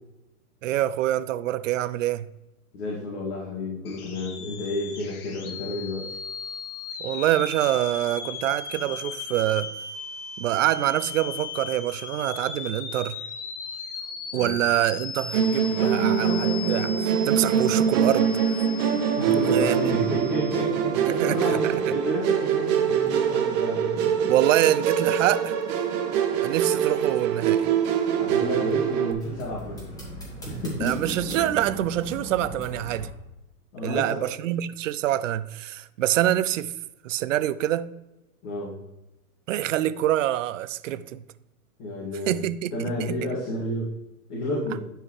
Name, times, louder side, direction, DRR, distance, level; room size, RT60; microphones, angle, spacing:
voice 1, 0.6-2.3 7.0-9.7 10.4-13.2 14.3-18.3 19.5-19.8 21.1-21.7 24.3-25.5 26.4-27.7 30.8-33.1 33.8-36.7 37.0-37.9 39.5-41.2 42.3-43.2, right 13 dB, 60° right, 0.5 m, -25 dB
voice 2, 2.7-6.2 14.3-14.6 19.2-24.1 28.2-29.9 30.4-31.6 33.7-34.2 38.4-38.8 41.8-42.4 42.7-44.0 44.3-44.8, left 1 dB, 50° left, 2.5 m, -30 dB
sound 1, 3.8-20.6, left 5 dB, 80° left, 1.5 m, -37 dB
Musical instrument, 15.3-29.1, right 8 dB, 25° right, 0.7 m, -24 dB
sound 2, 29.2-33.1, right 1 dB, 10° left, 2.1 m, -37 dB
11.5 x 4.6 x 3.3 m
hypercardioid pair, 145°, 44 cm